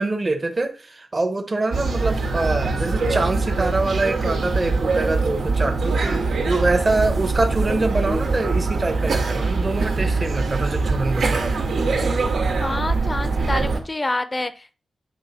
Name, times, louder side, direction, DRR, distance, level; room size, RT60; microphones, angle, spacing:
voice 1, 0.0-11.5, right 2 dB, 30° right, 1.0 m, -24 dB
sound 1, 1.7-13.8, right 3 dB, 90° right, 2.0 m, -23 dB
voice 2, 12.6-14.7, left 2 dB, 20° left, 0.7 m, -27 dB
8.7 x 3.3 x 5.6 m
wide cardioid pair, 135°, 0 cm